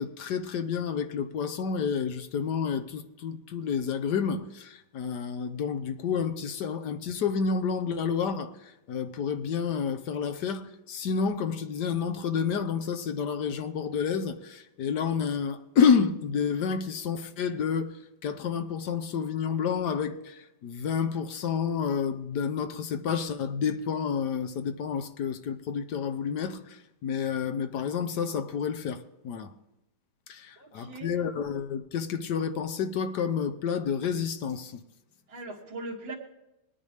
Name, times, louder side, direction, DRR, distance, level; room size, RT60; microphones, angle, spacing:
voice 1, 0.0-29.5 30.3-34.8, left 6 dB, 65° left, 1.5 m, -29 dB
voice 2, 30.6-31.1 35.3-36.2, right 2 dB, 85° right, 2.3 m, -40 dB
20.5 x 9.6 x 3.4 m
omnidirectional pair, 2.0 m